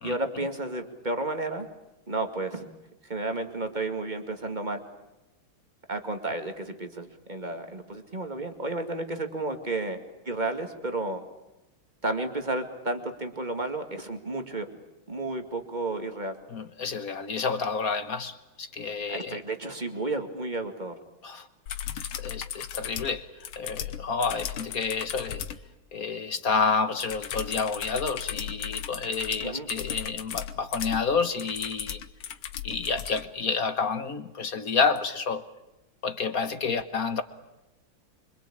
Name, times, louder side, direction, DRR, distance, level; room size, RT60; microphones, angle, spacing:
voice 1, 0.0-1.7 2.1-2.7 3.0-4.8 5.9-10.0 10.3-11.2 12.0-14.7 15.1-16.4 19.1-21.0 29.4-29.7, right 2 dB, 20° right, 6 dB, 2.2 m, -32 dB
voice 2, 16.5-19.4 21.2-21.5 22.2-23.2 23.6-25.4 25.9-32.0 32.6-35.4 36.0-37.2, left 5 dB, 50° left, 10 dB, 1.5 m, -29 dB
sound 1, 21.7-25.6 27.0-33.2 35.0-35.1, left 10 dB, 80° left, 2.1 m, -36 dB
25.5 x 25.5 x 8.7 m, 0.98 s
omnidirectional pair, 2.3 m